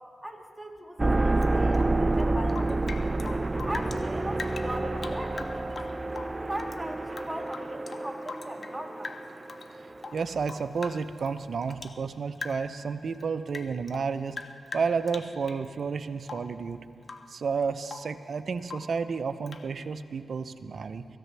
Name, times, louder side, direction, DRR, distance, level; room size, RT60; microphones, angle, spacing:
voice 1, 0.2-3.2 3.6-6.0 6.4-9.2, right 1 dB, 5° right, 1 dB, 2.2 m, -39 dB
sound 1, 1.0-10.1, right 2 dB, 30° right, 0.4 m, -29 dB
Rain / Drip, 1.4-4.0 4.3-6.8 7.1-8.8 9.0-9.7 10.0-12.0 12.4-12.8 13.1-15.7 16.2-16.6 17.0-17.3 17.6-18.2 18.6-19.0 19.5-19.7, left 4 dB, 60° left, 0.8 m, -42 dB
voice 2, 10.1-14.4 14.7-16.8 17.3-21.1, right 5 dB, 70° right, 11 dB, 0.6 m, -31 dB
25.0 x 14.5 x 3.4 m, 2.6 s
supercardioid pair, 45°, 0 cm